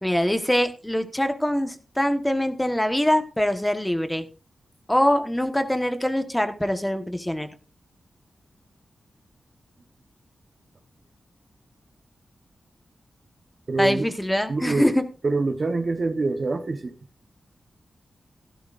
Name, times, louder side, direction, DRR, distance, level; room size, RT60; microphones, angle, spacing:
voice 1, 0.0-4.2 4.9-7.5 13.8-15.0, left 1 dB, 5° left, 1.2 m, -23 dB
voice 2, 13.7-14.1 14.5-14.9 15.2-17.0, right 3 dB, 35° right, 1.0 m, -25 dB
15.5 x 14.0 x 2.5 m
wide cardioid pair, 165°, 0 cm